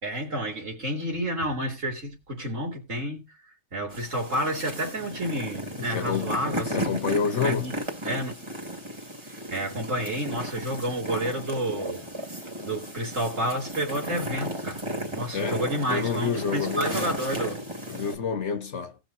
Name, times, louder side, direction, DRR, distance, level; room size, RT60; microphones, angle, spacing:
voice 1, 0.0-3.3 3.7-7.0 7.4-7.7 8.0-8.5 9.2-12.1 12.6-14.8 15.1-17.6, right 1 dB, 75° right, 3.9 m, -30 dB
sound 1, 3.9-18.1, equal, 20° right, 2.4 m, -35 dB
voice 2, 5.8-6.4 6.7-7.7 15.3-15.6 15.9-17.1 17.9-19.0, left 6 dB, 65° left, 1.4 m, -28 dB
18.5 x 6.3 x 2.8 m
omnidirectional pair, 1.3 m